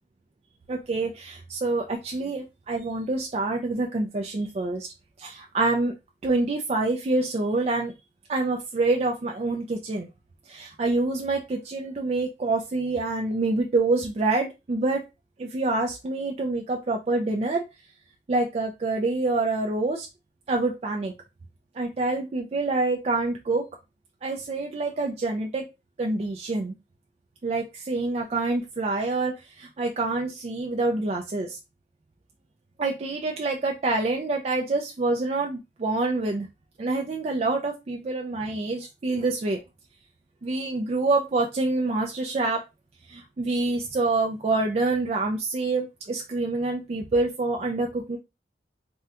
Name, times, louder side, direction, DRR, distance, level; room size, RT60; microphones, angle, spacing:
voice 1, 0.7-4.9 5.2-5.9 6.2-7.9 8.3-10.1 10.5-15.0 15.4-17.6 18.3-20.1 20.5-21.1 21.8-23.6 24.2-25.7 26.0-26.8 27.4-31.6 32.8-36.5 36.8-39.6 40.4-42.6 43.1-48.2, right 3 dB, 35° right, 1 dB, 0.3 m, -26 dB
3.5 x 2.1 x 2.7 m, 0.25 s
head